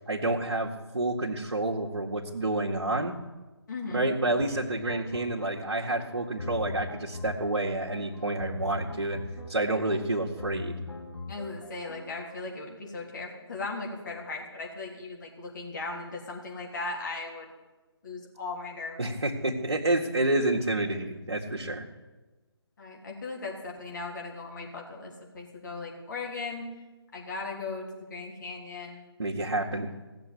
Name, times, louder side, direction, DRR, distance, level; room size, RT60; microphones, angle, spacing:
voice 1, 0.1-3.2 3.9-9.2 9.5-10.8 19.0-21.9 29.2-29.9, right 2 dB, 70° right, -2 dB, 1.9 m, -29 dB
voice 2, 3.7-4.1 11.3-17.5 18.0-19.0 22.8-26.7 27.1-29.0, left 3 dB, 45° left, -1 dB, 3.6 m, -37 dB
sound 1, 4.4-12.3, left 2 dB, 85° left, 2.3 m, -41 dB
17.0 x 7.5 x 10.0 m, 1.2 s
figure-of-eight pair, 150°, 14 cm